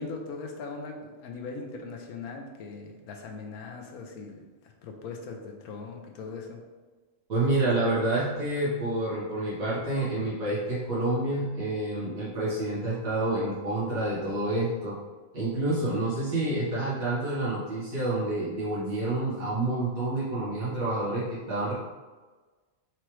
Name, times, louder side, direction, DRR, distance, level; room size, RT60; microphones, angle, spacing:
voice 1, 0.0-6.6, left 4 dB, 85° left, 2 dB, 1.2 m, -40 dB
voice 2, 7.3-15.0 15.3-21.7, right 2 dB, 65° right, -9 dB, 1.8 m, -28 dB
4.7 x 3.0 x 3.0 m, 1.3 s
omnidirectional pair, 1.5 m